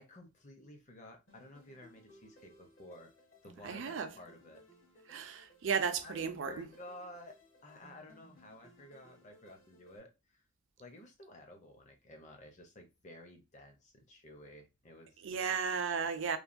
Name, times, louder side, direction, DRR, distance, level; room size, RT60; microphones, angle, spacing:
voice 1, 0.0-3.1 3.4-4.6 6.0-7.4 7.6-10.4 10.8-15.5, left 1 dB, 35° left, 0.6 m, -53 dB
sound 1, 1.3-10.0, left 1 dB, 65° left, 1.1 m, -62 dB
voice 2, 3.6-4.1 5.1-6.7 15.2-16.4, right 6 dB, 65° right, 0.4 m, -34 dB
3.1 x 2.1 x 2.5 m
head